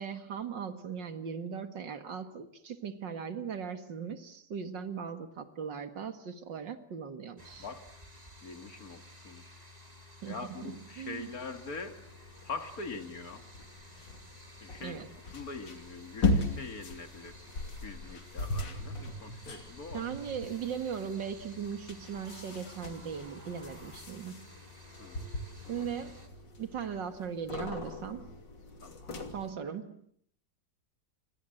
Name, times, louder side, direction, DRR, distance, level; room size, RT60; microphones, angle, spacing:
voice 1, 0.0-7.7 10.2-11.3 14.8-15.1 19.9-24.5 25.7-26.3 26.6-28.3 29.3-30.0, right 7 dB, 75° right, 9 dB, 2.5 m, -38 dB
sound 1, 7.4-26.3, left 2 dB, 20° right, 3.7 m, -54 dB
voice 2, 8.4-9.4 10.3-12.0 12.4-13.4 14.6-15.0 15.3-17.3 17.8-20.0 25.0-25.3 25.6-25.9 28.8-29.3, left 4 dB, 50° left, 8 dB, 2.5 m, -43 dB
sound 2, 11.2-29.5, left 2 dB, 80° left, 3.5 m, -39 dB
sound 3, 22.1-24.3, right 1 dB, 5° left, 7.0 m, -56 dB
28.0 x 24.0 x 7.9 m, 0.67 s
omnidirectional pair, 2.0 m